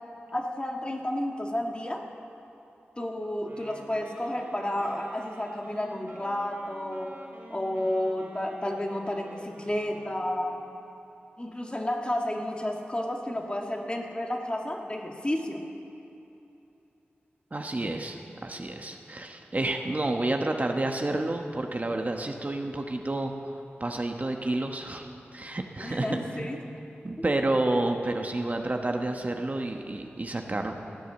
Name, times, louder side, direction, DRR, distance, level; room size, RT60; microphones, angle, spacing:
voice 1, 0.3-2.0 3.0-7.1 7.5-10.6 11.4-15.6 25.8-26.6, left 1 dB, 25° left, 2 dB, 1.6 m, -31 dB
Wind instrument woodwind instrument, 3.4-10.6, right 1 dB, 60° right, 3.0 m, -48 dB
voice 2, 17.5-23.5 23.8-26.5 27.0-30.8, right 2 dB, 40° right, 4 dB, 1.1 m, -30 dB
15.5 x 9.3 x 7.1 m, 2.9 s
cardioid pair, 45°, 4 cm